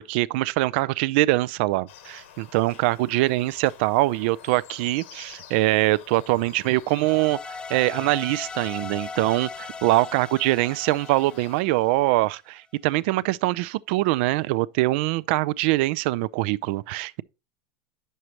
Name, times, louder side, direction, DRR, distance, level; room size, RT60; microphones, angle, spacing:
voice 1, 0.0-17.2, right 18 dB, 65° right, 0.4 m, -23 dB
sound 1, 1.9-11.6, left 9 dB, 75° left, 1.4 m, -48 dB
sound 2, 7.0-12.2, left 4 dB, 10° left, 0.3 m, -38 dB
9.7 x 6.5 x 2.9 m
supercardioid pair, 120°, 7 cm